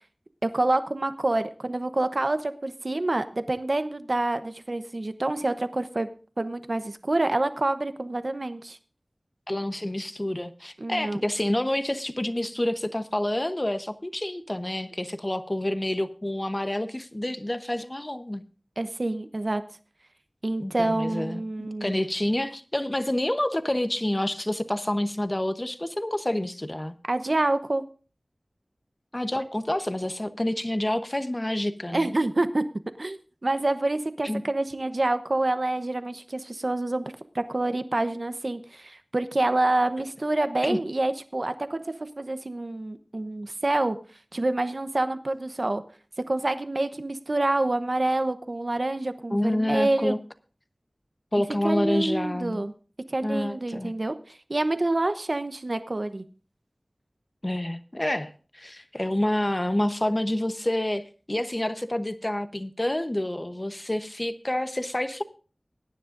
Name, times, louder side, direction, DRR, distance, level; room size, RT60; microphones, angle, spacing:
voice 1, 0.4-6.1 6.4-8.8 10.8-11.2 18.8-19.6 20.4-22.0 27.1-27.8 31.9-32.6 33.0-44.0 44.3-45.8 46.3-50.1 51.6-52.7 53.1-56.2, right 2 dB, 60° right, 10 dB, 0.9 m, -27 dB
voice 2, 9.5-18.4 20.6-27.0 29.1-32.1 34.2-34.4 40.6-40.8 49.3-50.2 51.3-52.7 53.2-53.9 57.4-65.2, left 1 dB, 30° left, 11 dB, 1.0 m, -28 dB
21.0 x 10.0 x 2.6 m, 0.37 s
wide cardioid pair, 50°, 0 cm